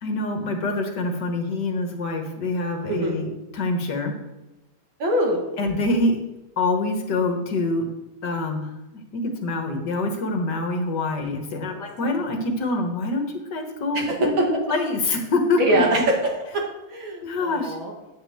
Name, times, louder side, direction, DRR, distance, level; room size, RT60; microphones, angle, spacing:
voice 1, 0.0-3.3 3.5-4.1 5.6-6.2 6.6-7.9 8.2-13.2 13.5-15.8 17.2-17.8, left 2 dB, 60° left, 3 dB, 1.9 m, -25 dB
voice 2, 2.9-3.2 5.0-5.6 11.7-12.3 13.9-14.1 14.4-14.5 15.6-16.6 16.9-17.9, right 1 dB, 75° right, 0 dB, 2.6 m, -24 dB
9.8 x 5.3 x 7.5 m, 0.99 s
omnidirectional pair, 2.2 m